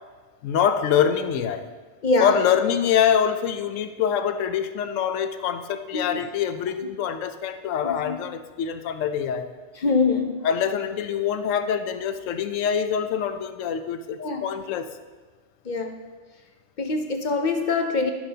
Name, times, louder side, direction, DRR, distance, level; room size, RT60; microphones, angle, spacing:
voice 1, 0.4-1.6 2.2-9.5 10.4-14.9, left 8 dB, 85° left, 10 dB, 1.0 m, -24 dB
voice 2, 2.0-2.4 5.9-6.2 7.8-8.2 9.8-10.4 14.2-14.4 15.6-16.0 16.8-18.1, left 3 dB, 50° left, 5 dB, 0.6 m, -24 dB
13.5 x 6.1 x 2.8 m, 1.3 s
omnidirectional pair, 1.3 m